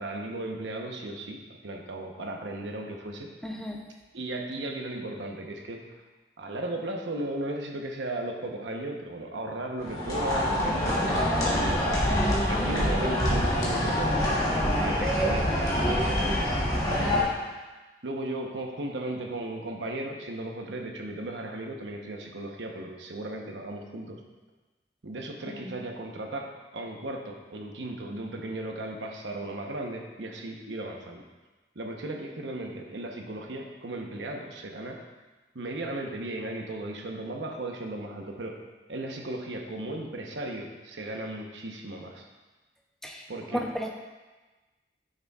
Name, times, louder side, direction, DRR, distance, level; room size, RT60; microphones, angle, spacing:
voice 1, 0.0-3.3 4.1-5.8 6.4-12.1 12.5-14.6 14.8-16.3 16.7-17.5 18.0-24.2 25.0-26.5 26.7-31.2 31.7-35.0 35.5-38.5 38.9-42.3 43.3-43.6, right 1 dB, 85° right, 2 dB, 0.9 m, -36 dB
voice 2, 3.4-3.8 25.6-25.7 43.0-43.2 43.5-43.9, equal, 5° left, 0 dB, 0.6 m, -33 dB
sound 1, 9.8-17.2, equal, 20° left, 1.4 m, -25 dB
8.9 x 6.7 x 2.4 m, 1.2 s
head